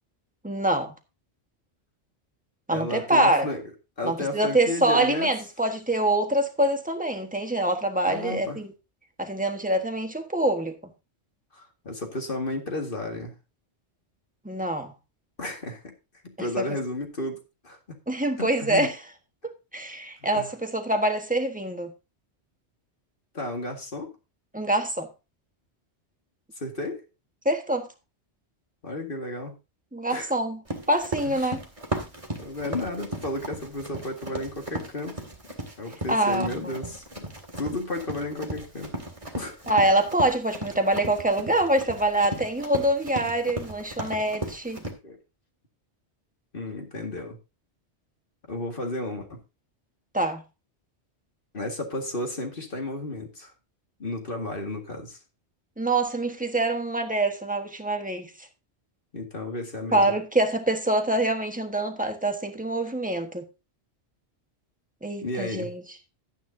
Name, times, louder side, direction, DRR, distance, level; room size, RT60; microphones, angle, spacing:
voice 1, 0.4-0.9 2.7-3.5 4.0-8.7 9.2-10.8 14.4-14.9 16.4-16.7 18.1-19.0 19.4-21.9 24.5-25.1 27.4-27.9 29.9-30.6 30.9-31.6 36.1-36.7 39.7-44.8 50.1-50.4 55.8-58.3 59.9-63.5 65.0-65.8, right 1 dB, 5° right, 1.3 m, -25 dB
voice 2, 2.7-3.6 4.0-5.3 8.1-8.6 11.5-13.3 15.4-15.9 16.2-18.0 18.4-18.9 20.3-20.5 23.3-24.1 26.6-27.0 28.8-29.6 30.1-30.3 31.3-31.5 32.4-35.2 35.8-37.3 37.6-38.9 39.4-39.6 45.0-45.2 46.5-47.4 48.5-49.4 51.5-53.5 54.0-55.2 59.1-60.0 65.2-65.7, left 2 dB, 50° left, 2.2 m, -33 dB
Run, 30.7-44.9, right 1 dB, 30° right, 2.0 m, -36 dB
12.0 x 9.4 x 2.8 m
omnidirectional pair, 1.2 m